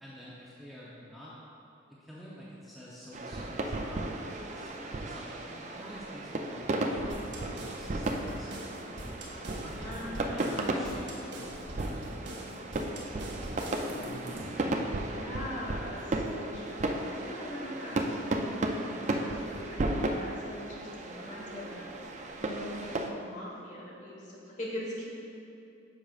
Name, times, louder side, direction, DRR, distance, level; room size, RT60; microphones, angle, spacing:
voice 1, 0.0-1.4 1.9-7.3 7.5-9.3 9.6-13.9, equal, ahead, -9 dB, 0.7 m, -50 dB
sound 1, 3.1-23.1, right 2 dB, 40° right, 0.4 m, -35 dB
sound 2, 7.1-14.6, right 1 dB, 65° right, 1.1 m, -43 dB
voice 2, 9.8-10.8 15.1-21.9 22.4-25.1, left 1 dB, 40° left, -4 dB, 1.3 m, -42 dB
9.9 x 6.0 x 2.4 m, 2.7 s
head